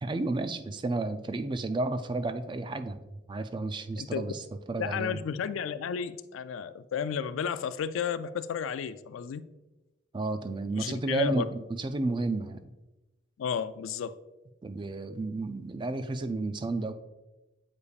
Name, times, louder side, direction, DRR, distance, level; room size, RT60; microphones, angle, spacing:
voice 1, 0.0-3.0 3.3-4.4 4.7-5.2 10.1-12.6 14.6-16.9, right 2 dB, 25° right, 10 dB, 0.3 m, -32 dB
voice 2, 4.8-9.5 10.7-11.5 13.4-14.2, left 7 dB, 80° left, 13 dB, 0.3 m, -32 dB
8.1 x 5.1 x 2.4 m, 1.0 s
head